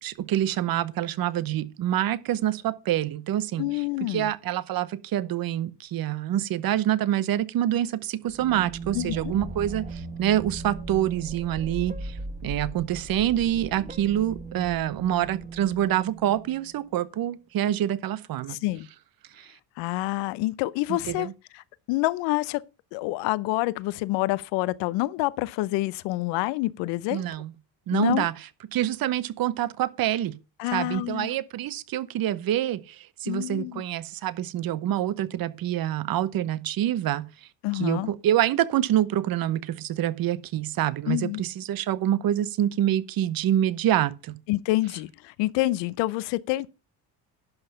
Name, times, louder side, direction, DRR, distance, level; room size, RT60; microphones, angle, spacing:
voice 1, 0.0-12.2 12.4-18.6 19.4-19.5 20.9-21.3 27.1-27.5 27.9-28.3 28.7-30.4 30.7-37.2 37.7-44.3, right 12 dB, 55° right, 0.9 m, -26 dB
voice 2, 3.6-4.3 8.9-9.3 18.5-18.9 19.8-22.6 22.9-27.2 27.9-28.3 30.6-31.3 33.3-33.8 37.6-38.1 41.1-41.4 44.5-46.7, left 19 dB, 80° left, 0.7 m, -27 dB
sound 1, 8.3-16.9, right 3 dB, 20° right, 1.6 m, -38 dB
11.5 x 5.8 x 5.6 m
supercardioid pair, 90°, 42 cm